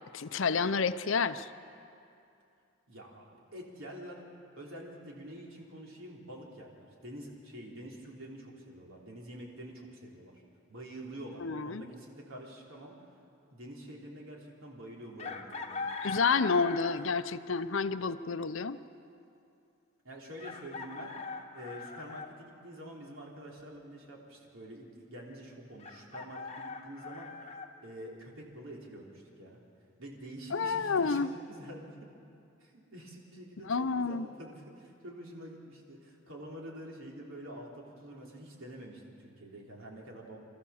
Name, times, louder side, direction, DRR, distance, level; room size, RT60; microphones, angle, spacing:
voice 1, 0.1-1.5 11.4-11.8 16.0-18.8 30.5-31.3 33.7-34.3, left 5 dB, 60° left, 13 dB, 0.6 m, -29 dB
voice 2, 2.9-4.3 4.6-10.4 10.7-12.9 13.5-15.9 20.0-21.2 21.5-27.3 27.8-29.6 30.0-32.0 32.6-40.4, right 1 dB, 70° right, -2 dB, 3.5 m, -47 dB
Chicken rooster, 15.2-17.1 18.8-18.9 20.4-22.3 25.8-27.7, left 4 dB, 30° left, 1.1 m, -41 dB
27.5 x 14.0 x 7.1 m, 2.6 s
head